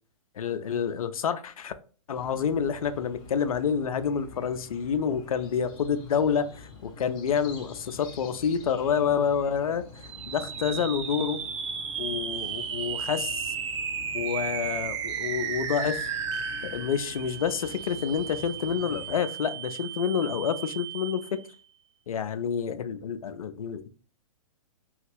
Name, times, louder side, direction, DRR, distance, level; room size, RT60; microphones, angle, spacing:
voice 1, 0.4-1.7 2.1-9.8 10.3-11.4 12.0-13.5 14.1-16.0 16.6-21.2 22.1-23.9, left 7 dB, 80° left, 0.4 m, -28 dB
sound 1, 2.2-19.2, left 4 dB, 25° left, 0.7 m, -47 dB
sound 2, 9.9-21.5, right 7 dB, 55° right, 0.6 m, -34 dB
3.0 x 2.4 x 3.3 m
hypercardioid pair, 120°, 18 cm